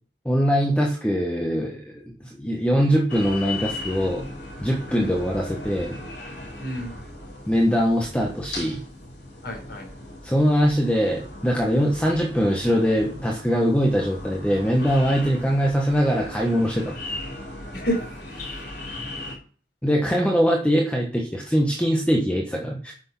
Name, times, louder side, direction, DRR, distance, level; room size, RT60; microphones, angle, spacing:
voice 1, 0.2-4.2 4.6-6.0 7.5-8.8 10.2-17.0 19.8-22.9, equal, 5° left, -1 dB, 1.1 m, -22 dB
sound 1, 3.1-19.3, left 2 dB, 85° left, 5.7 m, -37 dB
voice 2, 6.6-6.9 9.4-9.9 17.7-18.5 19.0-19.1 20.0-20.3, equal, 70° left, 1 dB, 4.2 m, -31 dB
9.9 x 6.3 x 6.0 m, 0.43 s
head